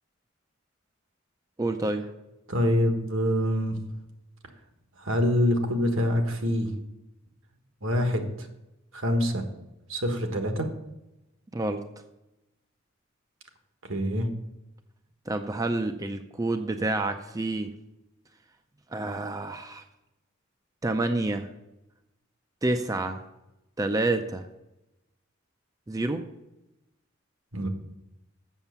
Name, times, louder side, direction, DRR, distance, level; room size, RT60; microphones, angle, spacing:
voice 1, 1.6-2.1 11.5-11.8 15.3-17.7 18.9-19.8 20.8-21.5 22.6-23.2 23.8-24.5 25.9-26.2, right 2 dB, 15° right, 7 dB, 0.4 m, -28 dB
voice 2, 2.5-3.8 5.0-6.7 7.8-8.5 8.9-9.4 9.9-10.7 13.8-14.3 27.5-27.7, left 1 dB, 70° right, 5 dB, 1.4 m, -25 dB
7.3 x 6.9 x 6.9 m, 0.93 s
head